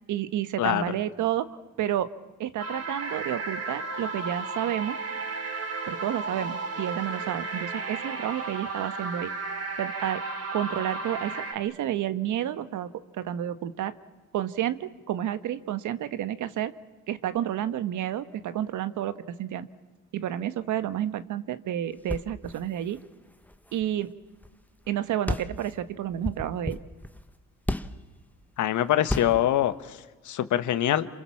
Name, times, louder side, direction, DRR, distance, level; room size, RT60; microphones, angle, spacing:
voice 1, 0.1-2.1 2.4-5.0 5.8-9.3 9.8-10.2 10.5-13.9 14.3-16.7 17.1-19.7 20.1-23.0 23.7-24.2 24.9-26.8, right 11 dB, 75° right, 12 dB, 1.3 m, -30 dB
sound 1, 2.6-11.5, right 3 dB, 50° right, 3.3 m, -34 dB
sound 2, 22.0-24.6 24.8-24.9 25.3-28.1 29.0-29.6, left 1 dB, 5° left, 1.1 m, -34 dB
voice 2, 28.6-30.0 30.2-31.1, left 12 dB, 75° left, 11 dB, 1.4 m, -24 dB
28.0 x 27.0 x 7.3 m, 1.2 s
cardioid pair, 90°, 30 cm